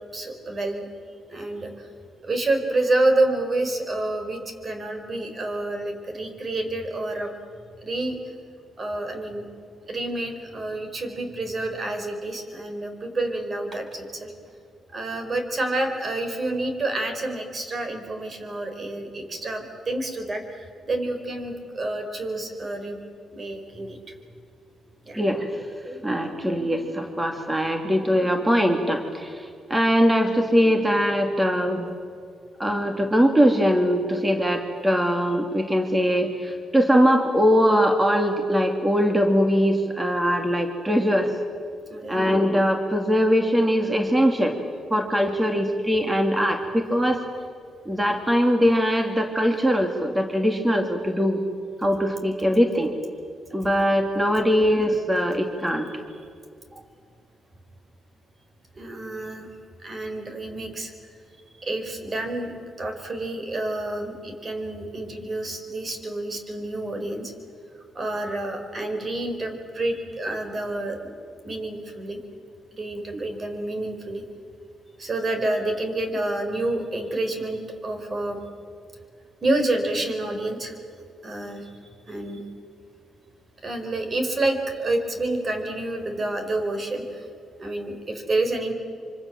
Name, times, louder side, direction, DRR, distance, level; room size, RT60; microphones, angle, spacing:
voice 1, 0.1-0.8 1.3-1.9 2.2-7.3 7.8-8.2 8.8-9.4 9.9-14.3 14.9-23.0 23.3-24.0 25.0-25.2 41.9-42.2 58.7-59.5 59.8-60.9 61.6-62.5 62.8-67.3 67.8-71.1 71.4-72.2 72.7-74.2 75.0-78.4 79.4-80.8 81.2-82.4 83.6-87.3 87.6-88.7, right 2 dB, 40° right, 6 dB, 5.0 m, -28 dB
voice 2, 25.1-31.9 32.6-41.3 42.1-44.6 44.9-47.2 47.9-51.4 51.8-52.9 53.5-55.9, equal, 15° right, 4 dB, 2.6 m, -21 dB
26.0 x 25.5 x 7.6 m, 2.2 s
cardioid pair, 85°, 0 cm